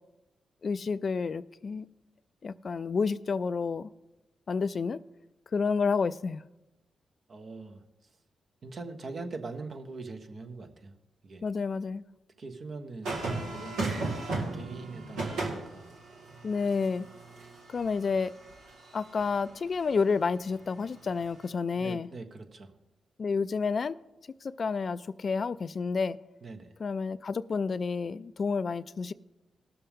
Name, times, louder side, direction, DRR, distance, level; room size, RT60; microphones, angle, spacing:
voice 1, 0.6-1.9 2.4-3.9 4.5-5.0 5.5-6.4 11.4-12.0 16.4-17.1 17.7-18.3 18.9-22.1 23.2-24.0 24.4-26.2 26.8-29.1, left 5 dB, 55° left, 0.3 m, -30 dB
voice 2, 7.3-7.8 8.6-10.9 11.2-11.4 12.4-13.9 14.4-15.9 21.7-22.7 26.4-26.7, right 3 dB, 55° right, 1.3 m, -42 dB
sound 1, 13.0-19.4 21.2-21.5, right 3 dB, 85° right, 1.9 m, -36 dB
18.0 x 6.8 x 3.6 m
supercardioid pair, 50°, 0 cm